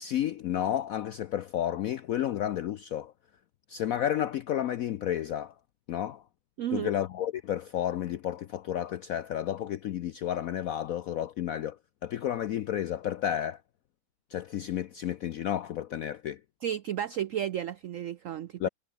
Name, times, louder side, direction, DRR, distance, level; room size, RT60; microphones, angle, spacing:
voice 1, 0.0-3.1 3.7-5.5 5.9-6.2 6.7-11.8 12.0-13.6 14.3-16.4 18.6-18.7, left 11 dB, 75° left, 0.8 m, -31 dB
voice 2, 6.6-6.9 16.6-18.7, right 10 dB, 85° right, 0.7 m, -33 dB
omnidirectional pair, 2.1 m